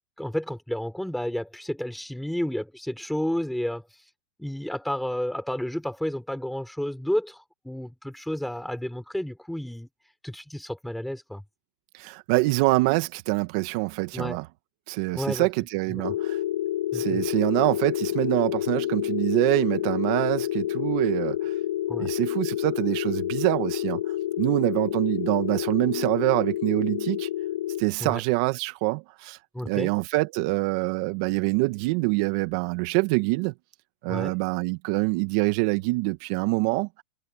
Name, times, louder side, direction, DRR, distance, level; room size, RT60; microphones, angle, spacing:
voice 1, 0.2-3.8 4.4-7.4 7.6-9.9 10.2-11.4 14.1-14.4 15.1-15.5 15.9-16.0 16.9-17.2 21.9-22.1 28.0-28.2 29.5-29.9 34.1-34.4, equal, ahead, 6.2 m, -31 dB
voice 2, 11.9-14.5 14.9-16.4 16.9-21.5 22.0-24.0 24.4-27.3 27.8-29.4 29.6-33.5 34.0-36.9, right 23 dB, 55° right, 2.0 m, -25 dB
sound 1, 16.0-27.8, left 13 dB, 85° left, 6.3 m, -29 dB
supercardioid pair, 130°, 4 cm